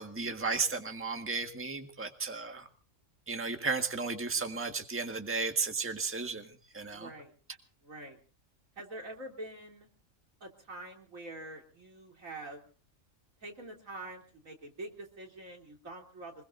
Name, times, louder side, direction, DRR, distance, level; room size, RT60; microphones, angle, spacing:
voice 1, 0.0-2.7 3.3-7.1, right 4 dB, 10° right, 5 dB, 1.5 m, -34 dB
voice 2, 6.9-7.3 7.8-8.2 8.8-9.9 10.4-12.6 13.4-16.3, right 2 dB, 85° right, 1 dB, 3.7 m, -45 dB
26.0 x 21.5 x 2.6 m, 0.38 s
omnidirectional pair, 1.4 m